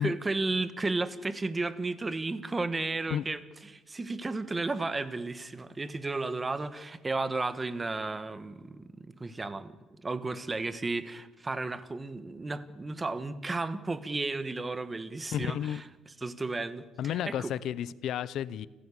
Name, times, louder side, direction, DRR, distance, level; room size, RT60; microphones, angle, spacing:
voice 1, 0.0-9.8 10.0-17.5, right 3 dB, 15° right, 13 dB, 1.3 m, -33 dB
voice 2, 15.3-15.8 17.0-18.7, left 10 dB, 60° left, 18 dB, 0.7 m, -32 dB
29.5 x 15.5 x 8.4 m, 1.2 s
cardioid pair, 160°, 0 cm